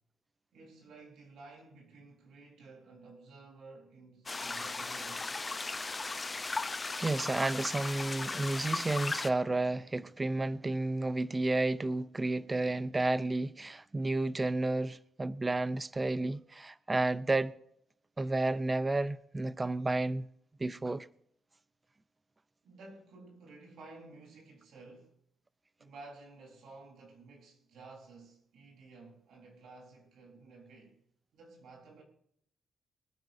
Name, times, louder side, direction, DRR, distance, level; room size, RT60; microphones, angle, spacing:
voice 1, 0.5-5.3 22.6-25.2 25.8-31.0 31.3-32.0, right 3 dB, 75° right, 4.1 m, -53 dB
sound 1, 4.3-9.3, left 3 dB, 20° left, 0.7 m, -37 dB
voice 2, 7.0-17.5 18.2-20.3 20.6-21.1, right 2 dB, 15° right, 0.5 m, -31 dB
24.0 x 9.8 x 2.7 m
cardioid pair, 150°, 0 cm